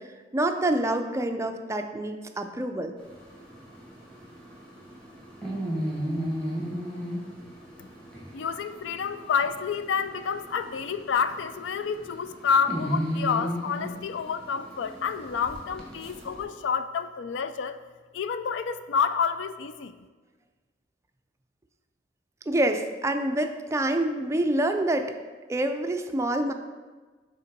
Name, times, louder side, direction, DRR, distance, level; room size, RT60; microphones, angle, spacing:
voice 1, 0.3-2.9 22.5-25.1 25.5-26.5, right 1 dB, 15° right, 6 dB, 0.4 m, -26 dB
sound 1, 3.0-16.4, equal, 5° left, 1.4 m, -35 dB
voice 2, 8.3-17.8 18.1-19.9, left 6 dB, 75° left, 11 dB, 0.4 m, -29 dB
5.5 x 3.7 x 5.2 m, 1.3 s
head